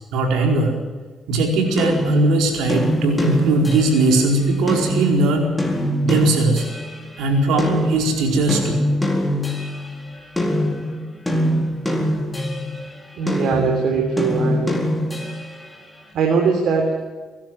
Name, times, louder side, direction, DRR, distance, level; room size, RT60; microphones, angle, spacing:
voice 1, 0.1-0.8 1.3-5.5 6.0-6.6 7.2-8.8, right 2 dB, 90° right, 2 dB, 4.6 m, -19 dB
sound 1, 1.8-7.1 7.6-12.9 13.3-15.6, left 1 dB, 10° left, 4.1 m, -23 dB
voice 2, 13.2-14.7 16.1-16.9, right 5 dB, 70° right, 2 dB, 3.5 m, -20 dB
23.5 x 12.0 x 9.3 m, 1.3 s
cardioid pair, 90°, 0 cm